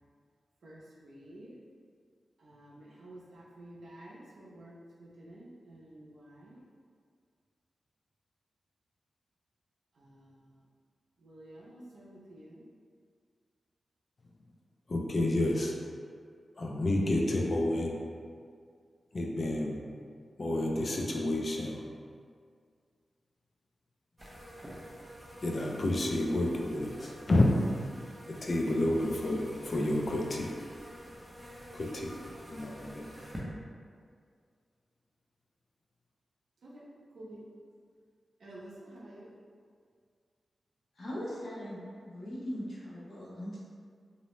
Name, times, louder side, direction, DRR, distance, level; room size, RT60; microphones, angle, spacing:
voice 1, 0.6-1.6 2.4-6.6 9.9-10.7 11.2-12.6 36.6-36.9 37.1-37.5 38.4-39.3, right 1 dB, 80° right, -5 dB, 0.5 m, -51 dB
voice 2, 14.9-15.8 16.6-18.0 19.1-19.8 20.4-21.8 25.4-27.5 28.4-30.5 31.7-32.1 32.5-33.0, left 1 dB, 40° left, 0 dB, 0.3 m, -30 dB
sound 1, 24.2-33.4, equal, 15° right, 0.5 m, -48 dB
voice 3, 41.0-43.6, equal, 60° left, -7 dB, 0.7 m, -40 dB
2.6 x 2.0 x 3.0 m, 2.1 s
wide cardioid pair, 130°, 0 cm